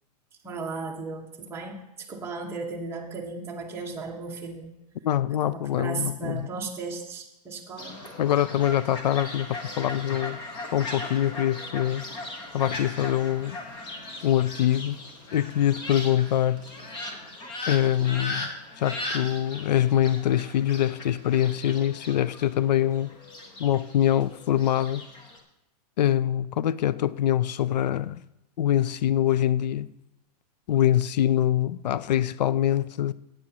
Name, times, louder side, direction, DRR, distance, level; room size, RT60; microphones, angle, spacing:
voice 1, 0.4-4.7 5.4-8.0, right 4 dB, 10° right, 1.1 m, -35 dB
voice 2, 5.0-6.5 8.2-10.4 10.7-12.0 12.5-13.6 14.2-15.0 15.3-16.6 17.7-18.5 18.8-23.1 23.6-25.0 26.0-28.2 28.6-29.9 30.7-33.1, left 11 dB, 80° left, 0.4 m, -24 dB
Fowl, 7.8-25.4, left 2 dB, 20° left, 1.0 m, -38 dB
13.5 x 8.9 x 2.9 m
hypercardioid pair, 155°, 21 cm